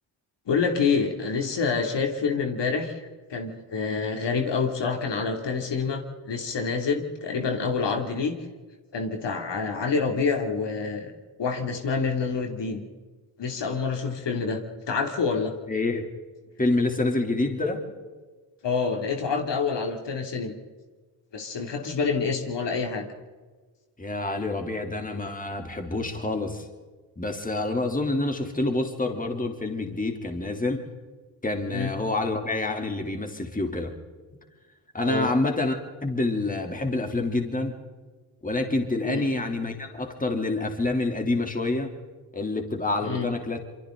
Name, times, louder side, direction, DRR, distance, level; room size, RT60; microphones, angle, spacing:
voice 1, 0.5-8.3 8.9-11.1 11.4-12.8 13.4-14.6 14.9-15.5 18.6-20.5 21.3-23.1 31.7-31.9 35.0-35.3 39.0-39.3 43.0-43.3, left 5 dB, 60° left, 3 dB, 3.1 m, -27 dB
voice 2, 15.7-16.0 16.6-17.8 24.0-26.7 27.2-30.8 31.4-33.9 34.9-37.8 38.4-41.9 42.3-43.6, left 2 dB, 15° left, 3 dB, 3.3 m, -27 dB
27.5 x 24.0 x 4.0 m, 1.4 s
supercardioid pair, 65°, 48 cm